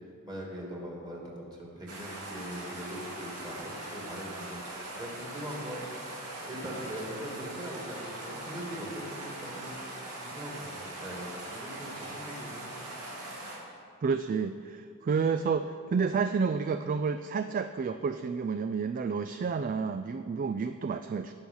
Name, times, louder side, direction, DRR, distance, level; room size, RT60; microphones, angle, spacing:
voice 1, 0.2-5.9 6.4-9.8 10.2-12.9, equal, 20° right, -3 dB, 2.5 m, -41 dB
sound 1, 1.9-13.6, right 1 dB, 85° right, 2.7 m, -41 dB
voice 2, 14.0-21.3, right 5 dB, 40° right, 9 dB, 0.3 m, -30 dB
17.5 x 6.2 x 5.5 m, 2.4 s
head